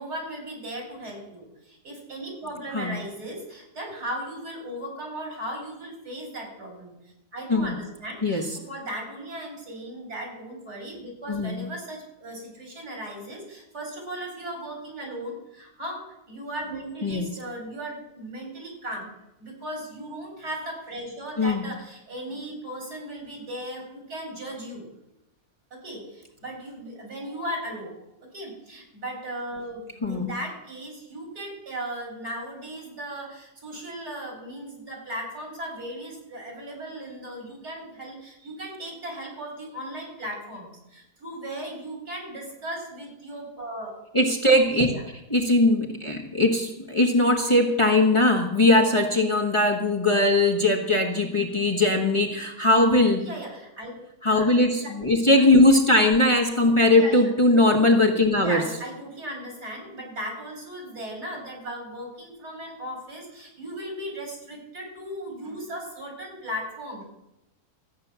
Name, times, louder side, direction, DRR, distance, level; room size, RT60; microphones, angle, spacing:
voice 1, 0.0-7.0 7.3-19.1 19.4-24.8 25.7-43.9 44.6-45.0 53.1-53.9 54.3-54.9 55.3-55.5 56.9-57.3 58.3-67.0, right 1 dB, 75° right, 1 dB, 4.6 m, -37 dB
voice 2, 11.3-11.6 17.0-17.2 21.4-21.6 30.0-30.3 44.1-44.9 45.3-53.3 54.2-58.6, left 2 dB, 20° left, 1 dB, 1.4 m, -20 dB
14.0 x 8.9 x 6.9 m, 0.88 s
omnidirectional pair, 1.7 m